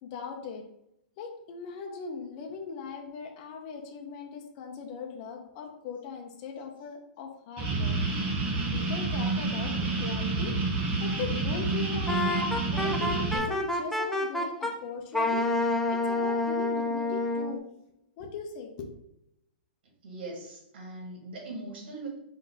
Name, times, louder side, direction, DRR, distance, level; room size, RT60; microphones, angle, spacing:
voice 1, 0.0-0.6 1.2-8.0 8.7-10.5 11.0-12.4 12.6-17.7 18.2-18.9, left 5 dB, 45° left, 3 dB, 0.7 m, -39 dB
sound 1, 7.6-13.4, right 3 dB, 30° right, 1.1 m, -29 dB
Wind instrument woodwind instrument, 12.1-14.7 15.1-17.5, left 2 dB, 5° left, 0.5 m, -28 dB
voice 2, 20.0-22.1, right 2 dB, 70° right, -1 dB, 1.5 m, -41 dB
3.8 x 2.7 x 4.1 m, 0.79 s
hypercardioid pair, 140°, 6 cm